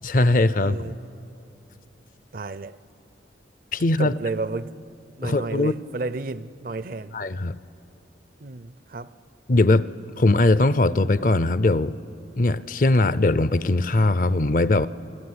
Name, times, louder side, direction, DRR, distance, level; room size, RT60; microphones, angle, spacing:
voice 1, 0.0-0.9 3.7-4.1 5.2-5.7 7.1-7.6 9.5-9.9 10.2-12.0 12.4-14.9, left 2 dB, 45° left, 0.5 m, -20 dB
voice 2, 0.6-1.0 2.3-2.8 4.0-4.8 5.2-7.2 8.4-9.1, right 3 dB, 50° right, 0.5 m, -32 dB
29.0 x 20.5 x 9.7 m
head